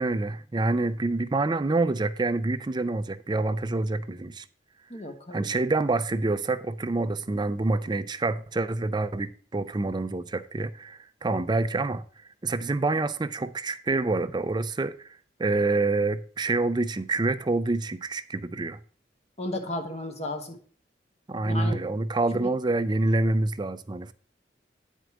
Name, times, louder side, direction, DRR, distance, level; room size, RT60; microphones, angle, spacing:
voice 1, 0.0-4.5 5.3-12.0 12.4-15.1 15.4-18.8 21.3-24.1, right 2 dB, 25° right, 0.5 m, -27 dB
voice 2, 4.9-5.5 19.4-20.6 21.4-21.8 22.4-22.5, left 1 dB, 40° left, 1.4 m, -34 dB
9.1 x 4.6 x 6.0 m
head